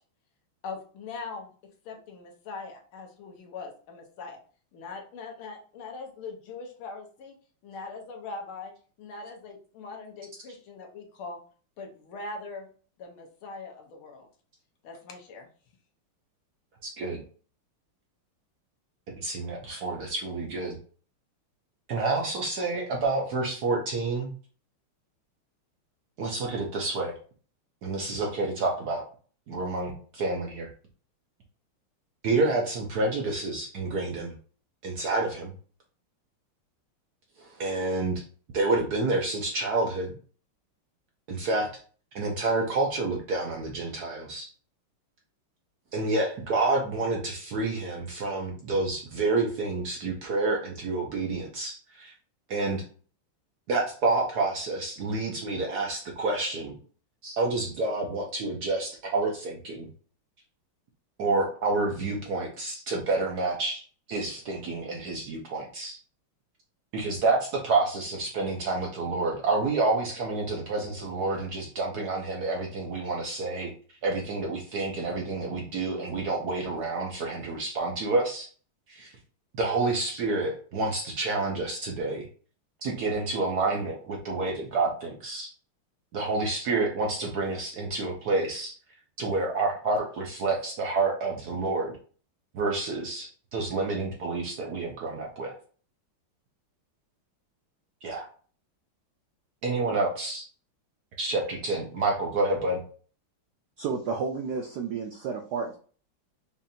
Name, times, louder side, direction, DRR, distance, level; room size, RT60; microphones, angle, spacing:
voice 1, 0.6-1.5 1.9-4.4 4.7-7.3 7.6-8.7 9.0-11.4 11.8-12.7 13.0-14.3 14.8-15.5, left 4 dB, 75° left, 2 dB, 1.7 m, -41 dB
voice 2, 16.8-17.2 19.2-20.8 21.9-24.3 26.2-27.1 27.8-29.0 29.5-30.7 32.2-34.3 34.8-35.5 37.4-38.2 38.5-40.1 41.3-41.7 42.1-44.5 45.9-52.1 52.5-52.8 53.7-56.8 57.2-59.9 61.2-63.8 64.1-66.0 66.9-73.7 74.0-78.5 78.9-79.2 79.5-82.3 82.8-85.5 86.1-88.7 89.2-92.0 92.5-95.5 98.0-98.3 99.6-100.4 101.2-102.8, right 3 dB, 65° right, 0 dB, 1.0 m, -28 dB
voice 3, 103.8-105.8, right 5 dB, 90° right, 2 dB, 0.9 m, -31 dB
5.3 x 2.5 x 2.7 m, 0.41 s
omnidirectional pair, 2.4 m